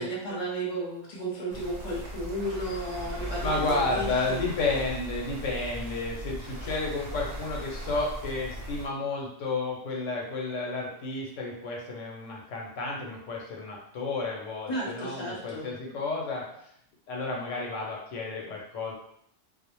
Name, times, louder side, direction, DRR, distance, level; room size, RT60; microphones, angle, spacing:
voice 1, 0.0-4.4 14.7-15.7, right 1 dB, 40° left, -4 dB, 0.7 m, -34 dB
sound 1, 1.5-8.9, equal, 60° right, 0.8 m, -38 dB
voice 2, 3.4-16.4 17.1-18.9, left 3 dB, 90° left, -1 dB, 1.0 m, -31 dB
2.3 x 2.0 x 2.9 m, 0.71 s
omnidirectional pair, 1.2 m